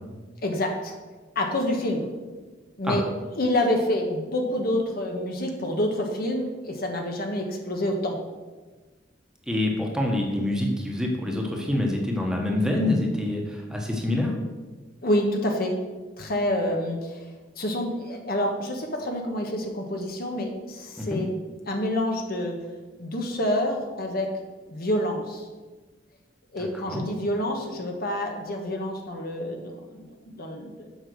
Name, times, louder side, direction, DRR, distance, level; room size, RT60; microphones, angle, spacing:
voice 1, 0.4-0.9 1.3-2.1 2.8-3.0 3.3-8.2 15.0-15.7 16.2-17.2 17.6-21.3 21.7-22.6 23.0-24.3 24.7-25.5 26.5-30.9, left 1 dB, 55° left, 2 dB, 1.3 m, -27 dB
voice 2, 9.5-14.3 21.0-21.2 26.6-27.1, left 1 dB, 5° right, -1 dB, 1.3 m, -26 dB
7.8 x 5.6 x 6.3 m, 1.3 s
head